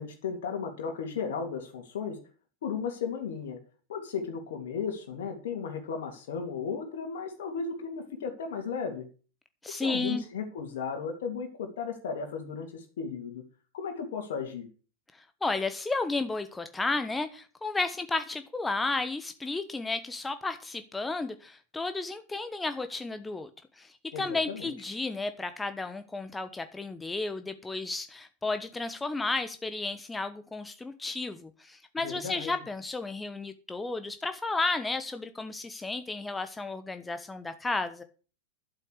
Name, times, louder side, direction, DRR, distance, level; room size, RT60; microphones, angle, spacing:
voice 1, 0.0-2.2 2.6-3.6 3.9-9.1 9.7-13.4 13.7-14.7 24.1-24.7 32.0-32.5, left 6 dB, 55° left, 2 dB, 2.9 m, -35 dB
voice 2, 9.6-10.2 15.1-23.5 23.8-38.0, left 3 dB, 10° left, 9 dB, 1.1 m, -33 dB
12.0 x 8.2 x 6.6 m, 0.36 s
figure-of-eight pair, 90°, 0 cm